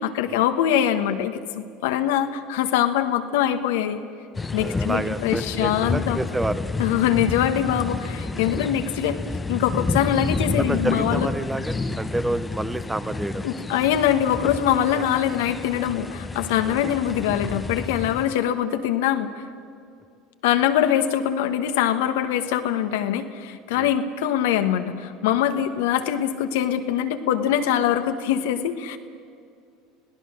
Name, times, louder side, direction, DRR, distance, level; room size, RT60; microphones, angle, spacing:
voice 1, 0.0-4.0 4.5-6.2 6.8-9.2 9.5-11.3 13.4-19.3 20.4-29.0, left 10 dB, 75° left, 8 dB, 1.3 m, -23 dB
sound 1, 4.3-18.3, left 3 dB, 20° left, 0.9 m, -30 dB
voice 2, 4.5-6.6 10.6-13.6 14.9-15.1 16.6-16.8 23.7-23.9, right 2 dB, 10° right, 13 dB, 1.0 m, -29 dB
26.5 x 17.5 x 6.6 m, 2.4 s
hypercardioid pair, 80°, 0 cm